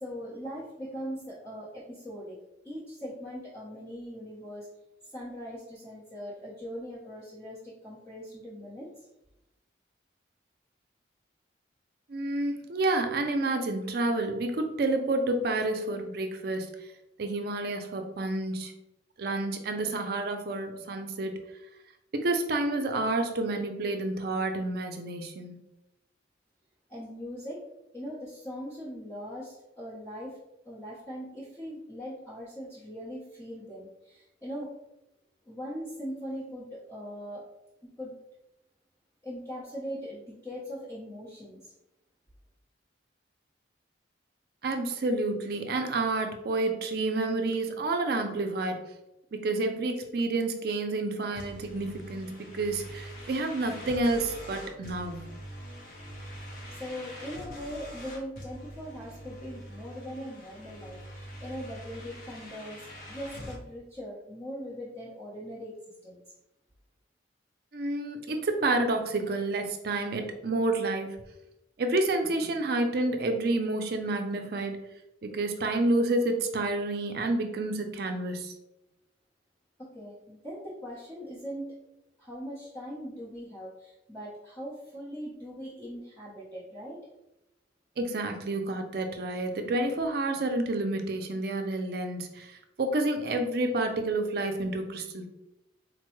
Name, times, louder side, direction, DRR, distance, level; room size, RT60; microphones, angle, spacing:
voice 1, 0.0-2.4 2.6-4.7 5.0-9.1 26.9-27.6 27.9-30.4 30.6-34.7 35.4-37.4 37.8-38.2 39.2-41.7 56.7-65.7 66.0-66.2 79.8-81.7 82.2-87.0, equal, 15° left, -10 dB, 0.8 m, -40 dB
voice 2, 12.1-16.7 17.2-18.7 19.2-21.4 22.1-25.6 44.6-48.8 49.3-55.3 67.7-71.2 71.8-74.8 75.2-78.5 88.0-95.3, right 2 dB, 55° right, 5 dB, 0.4 m, -29 dB
sound 1, 51.4-63.6, equal, 45° left, 0.7 m, -44 dB
4.0 x 2.2 x 3.0 m, 0.91 s
head